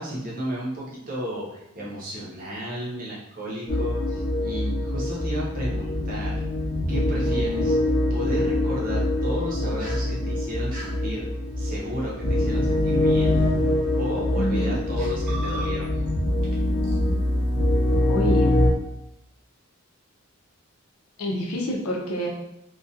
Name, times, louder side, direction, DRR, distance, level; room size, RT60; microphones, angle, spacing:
voice 1, 0.0-6.4 6.9-7.8 8.1-11.3 11.6-13.4 14.0-15.9, equal, 40° right, -5 dB, 0.7 m, -33 dB
sound 1, 3.7-18.7, left 1 dB, 40° left, 0.5 m, -24 dB
sound 2, 9.8-10.0 10.7-10.9 12.7-12.8 13.6-14.0 14.6-14.7 15.0-16.1 16.4-16.6 16.8-17.0, right 1 dB, 80° right, 0.8 m, -38 dB
voice 2, 14.3-14.8 18.1-18.6 21.2-22.3, equal, 85° left, 0 dB, 0.6 m, -27 dB
2.3 x 2.2 x 2.6 m, 0.83 s
head